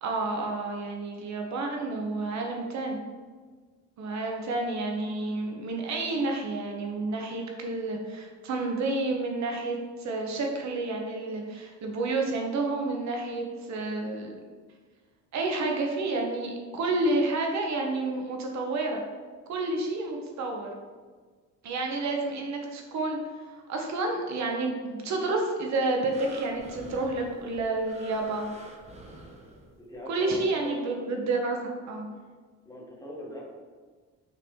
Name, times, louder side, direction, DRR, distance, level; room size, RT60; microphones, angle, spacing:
voice 1, 0.0-3.0 4.0-14.3 15.3-19.0 19.5-20.7 21.6-23.2 23.7-28.5 30.1-32.1, right 2 dB, 65° right, 1 dB, 1.0 m, -30 dB
sound 1, 26.1-30.0 30.6-30.7, right 1 dB, 20° right, 0.8 m, -48 dB
voice 2, 29.8-30.8 32.6-33.5, left 1 dB, 10° left, -3 dB, 1.2 m, -41 dB
5.8 x 2.6 x 3.5 m, 1.5 s
cardioid pair, 90°, 30 cm